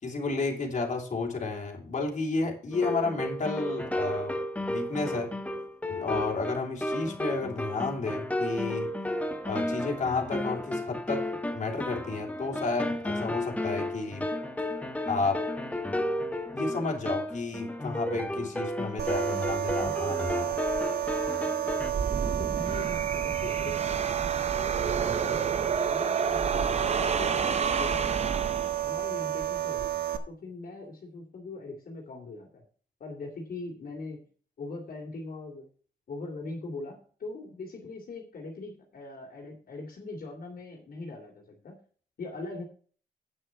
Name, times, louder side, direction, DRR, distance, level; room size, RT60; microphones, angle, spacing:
voice 1, 0.0-4.4 4.7-5.3 5.9-8.9 9.4-11.2 11.5-14.3 15.1-15.4 16.5-20.6, left 3 dB, 50° left, 0 dB, 3.2 m, -31 dB
sound 1, 2.7-21.9, left 1 dB, 10° left, 1.2 m, -33 dB
sound 2, 19.0-30.2, right 13 dB, 75° right, 1.2 m, -31 dB
sound 3, 21.8-29.0, right 5 dB, 40° right, 0.8 m, -30 dB
voice 2, 22.2-24.8 25.2-28.3 28.8-29.9 30.3-32.6 33.0-34.2 34.6-35.7 36.1-41.8 42.2-42.6, left 3 dB, 65° left, -1 dB, 2.8 m, -41 dB
9.0 x 6.6 x 5.9 m, 0.43 s
wide cardioid pair, 120°, 16 cm